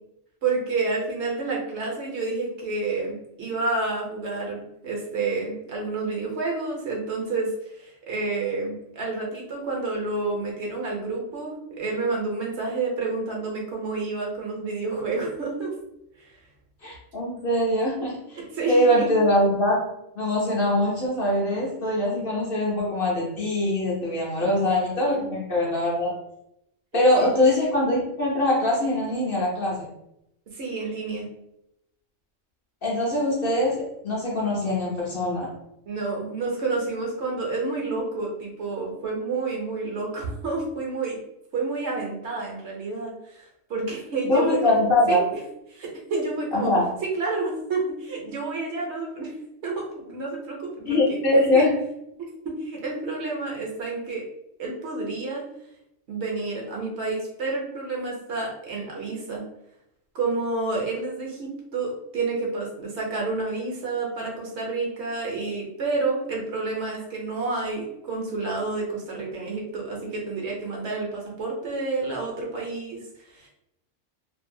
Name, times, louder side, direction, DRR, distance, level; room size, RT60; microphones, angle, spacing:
voice 1, 0.4-15.7 16.2-16.3 18.4-19.1 24.4-24.6 25.1-25.2 26.9-27.3 30.5-31.3 35.9-41.2 41.5-44.8 45.1-45.2 45.7-46.7 47.1-49.3 49.6-51.0 51.5-51.6 52.2-54.3 54.6-55.4 56.1-59.4 60.1-73.5, right 3 dB, 65° right, -1 dB, 0.9 m, -29 dB
voice 2, 16.8-18.4 18.7-19.8 20.2-26.1 26.9-29.9 32.8-35.5 44.3-45.2 46.5-46.9 50.9-51.7, left 1 dB, 55° left, -4 dB, 0.8 m, -22 dB
2.6 x 2.2 x 2.6 m, 0.82 s
omnidirectional pair, 1.3 m